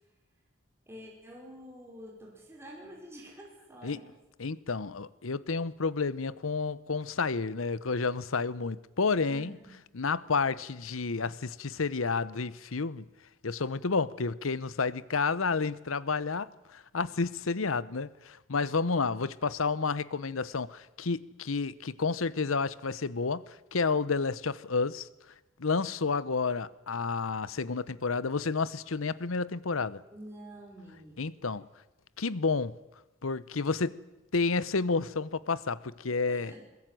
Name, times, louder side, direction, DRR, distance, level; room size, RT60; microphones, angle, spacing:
voice 1, 0.9-4.1 9.3-9.8 30.1-31.3 36.3-36.6, equal, 10° right, 5.5 m, -48 dB
voice 2, 4.4-9.6 9.9-13.0 13.4-25.1 25.6-30.0 31.2-31.7 32.2-32.8 33.2-34.0 34.3-36.5, left 4 dB, 85° left, 0.9 m, -30 dB
21.5 x 21.0 x 9.2 m
head